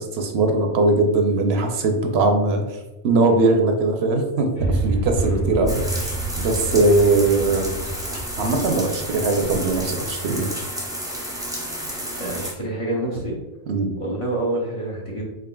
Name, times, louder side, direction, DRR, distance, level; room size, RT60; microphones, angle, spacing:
voice 1, 0.0-2.8 3.0-7.7 8.1-10.5 13.7-13.9, right 2 dB, 75° right, 3 dB, 0.8 m, -20 dB
sound 1, 4.6-10.7, right 2 dB, 85° left, 1.8 m, -28 dB
voice 2, 5.2-5.7 12.2-13.4 14.0-15.2, right 1 dB, 35° left, -3 dB, 0.7 m, -27 dB
sound 2, 5.7-12.5, equal, 5° right, 0.3 m, -31 dB
3.7 x 3.7 x 2.2 m, 1.1 s
omnidirectional pair, 1.1 m